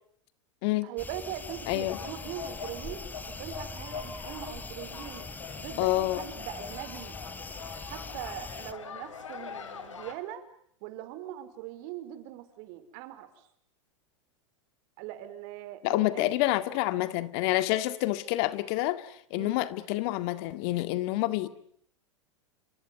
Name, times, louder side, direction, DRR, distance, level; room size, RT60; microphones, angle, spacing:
voice 1, 0.8-3.0 3.3-5.3 5.6-7.2 7.9-10.4 10.8-13.3 15.0-16.3 19.3-19.6, right 12 dB, 55° right, 4.7 m, -41 dB
sound 1, 1.0-8.7, left 3 dB, 10° left, 1.5 m, -42 dB
sound 2, 1.5-10.1, left 6 dB, 85° left, 5.1 m, -43 dB
voice 2, 1.7-2.0 5.8-6.2 15.8-21.5, left 17 dB, 55° left, 2.0 m, -28 dB
29.0 x 27.5 x 7.0 m
hypercardioid pair, 100°, 16 cm